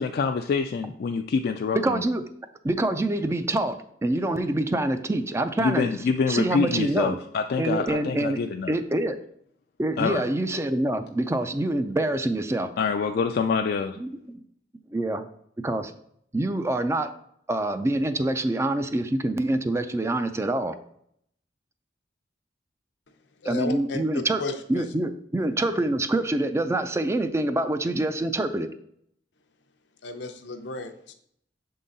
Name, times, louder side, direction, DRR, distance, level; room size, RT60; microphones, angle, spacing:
voice 1, 0.0-2.0 5.6-8.8 10.0-10.2 12.8-14.0, left 5 dB, 60° left, 0.3 m, -26 dB
voice 2, 1.7-2.2 2.6-5.9 6.3-7.2 7.6-8.4 8.7-9.2 9.8-12.7 14.0-14.4 14.9-15.2 15.6-15.9 16.3-17.1 17.5-20.7 23.5-24.4 24.7-28.7, right 1 dB, 15° right, 0.4 m, -26 dB
voice 3, 23.4-24.8 30.0-31.1, left 3 dB, 90° left, 0.7 m, -34 dB
6.6 x 3.8 x 4.0 m
head